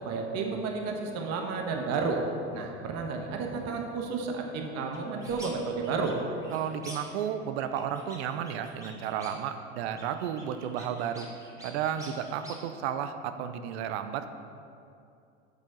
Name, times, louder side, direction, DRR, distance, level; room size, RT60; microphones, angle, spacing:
voice 1, 0.0-2.2 2.5-6.1, right 4 dB, 50° right, 2 dB, 1.3 m, -32 dB
sound 1, 4.9-5.5 5.8-7.3 7.6-9.5 9.8-12.6, right 1 dB, 10° right, 1.9 m, -48 dB
voice 2, 6.5-11.3 11.6-14.3, right 8 dB, 70° right, 9 dB, 0.7 m, -33 dB
10.5 x 6.4 x 3.9 m, 2.6 s
hypercardioid pair, 90°, 34 cm